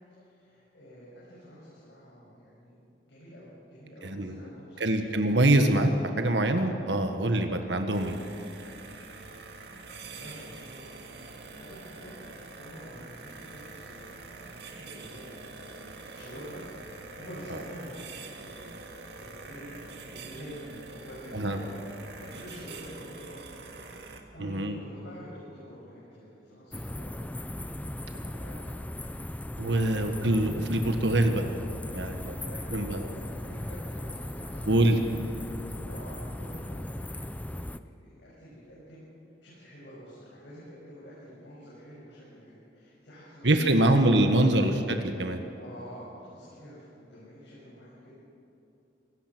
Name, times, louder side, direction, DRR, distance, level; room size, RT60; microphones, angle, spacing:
voice 1, 0.2-2.8 3.1-5.4 7.5-7.6 9.9-15.7 16.0-18.0 18.4-18.9 19.1-21.7 22.2-27.1 27.8-28.6 29.9-30.6 32.5-35.0 35.4-37.7 38.0-39.1 39.4-43.5 43.8-43.9 44.2-44.3 45.6-48.1, equal, 85° left, -7 dB, 6.6 m, -47 dB
voice 2, 4.0-4.3 4.8-5.9 6.2-8.2 21.3-21.6 24.4-24.8 29.6-31.4 31.9-32.4 32.7-33.0 34.7-35.0 43.4-45.4, right 1 dB, 85° right, 6 dB, 1.6 m, -24 dB
sound 1, 7.9-24.2, right 3 dB, 70° right, 2.0 m, -45 dB
sound 2, 26.7-37.8, left 1 dB, 10° left, 0.5 m, -37 dB
27.5 x 17.5 x 6.2 m, 2.8 s
head